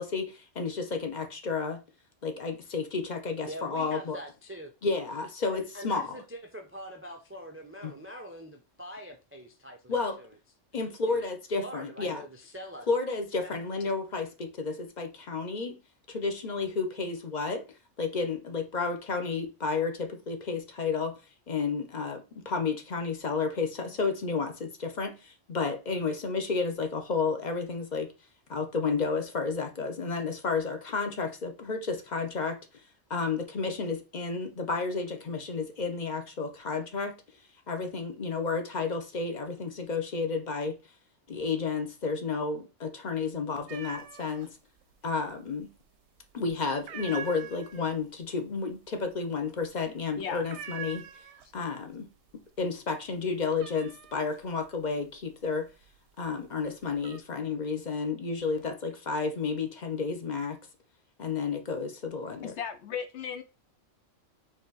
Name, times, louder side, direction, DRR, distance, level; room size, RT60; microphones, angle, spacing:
voice 1, 0.0-1.8 2.2-4.2 4.8-6.2 7.8-7.9 9.9-10.2 10.7-12.2 12.9-15.8 16.1-17.6 18.0-21.1 21.5-28.1 28.5-32.6 33.1-37.1 37.7-40.8 41.3-44.6 45.0-45.7 46.3-51.0 51.5-52.1 52.6-55.7 56.2-60.6 61.2-62.5, left 4 dB, 40° left, 0.8 m, -31 dB
voice 2, 3.5-4.7 5.5-10.3 11.1-11.2 11.6-12.9 13.3-13.5, equal, 20° right, 0.4 m, -43 dB
sound 1, 43.7-44.5 44.8-45.6 45.9-46.3 46.7-51.8 52.1-52.6 52.9-56.1 56.6-57.2, right 8 dB, 70° right, 0.8 m, -44 dB
voice 3, 62.4-63.4, left 7 dB, 65° left, 0.9 m, -36 dB
4.2 x 3.0 x 3.9 m
omnidirectional pair, 1.3 m